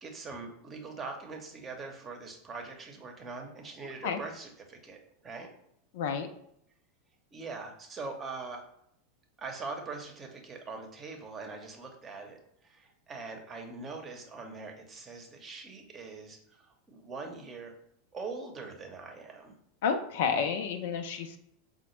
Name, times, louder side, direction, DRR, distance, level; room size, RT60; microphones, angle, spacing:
voice 1, 0.0-5.5 7.3-8.6 9.4-17.7 18.1-19.5, right 4 dB, 25° right, 3 dB, 0.8 m, -42 dB
voice 2, 5.9-6.3 19.8-21.4, left 6 dB, 60° left, 8 dB, 0.4 m, -30 dB
4.8 x 2.0 x 3.1 m, 0.72 s
figure-of-eight pair, 85°, 0 cm